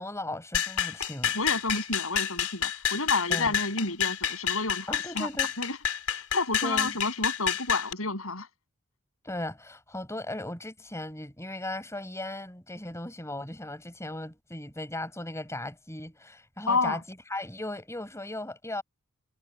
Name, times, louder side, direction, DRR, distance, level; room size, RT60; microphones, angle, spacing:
voice 1, 0.0-1.4 3.3-3.5 4.9-5.5 6.6-6.9 9.2-18.8, left 1 dB, 10° left, 5.2 m, -37 dB
sound 1, 0.5-7.9, left 8 dB, 85° left, 4.8 m, -29 dB
voice 2, 1.3-5.3 5.6-5.8 6.1-8.5 16.7-17.0, left 3 dB, 65° left, 7.9 m, -30 dB
head